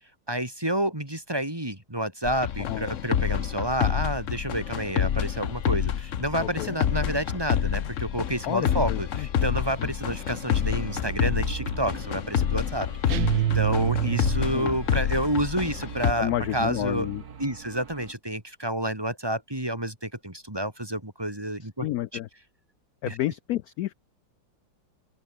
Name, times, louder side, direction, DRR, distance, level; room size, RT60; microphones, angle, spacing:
voice 1, 0.3-17.1 17.4-21.9 23.1-23.2, right 1 dB, 10° right, 2.8 m, -29 dB
sound 1, 2.2-16.1, left 9 dB, 50° left, 1.1 m, -28 dB
voice 2, 6.4-6.8 8.5-9.3 9.8-9.9 14.5-14.8 16.2-17.2 21.8-22.3 23.0-23.9, left 14 dB, 75° left, 0.8 m, -30 dB
sound 2, 9.5-18.1, right 6 dB, 55° right, 2.1 m, -40 dB
sound 3, 13.1-14.8, right 11 dB, 85° right, 1.8 m, -26 dB
open air
omnidirectional pair, 2.1 m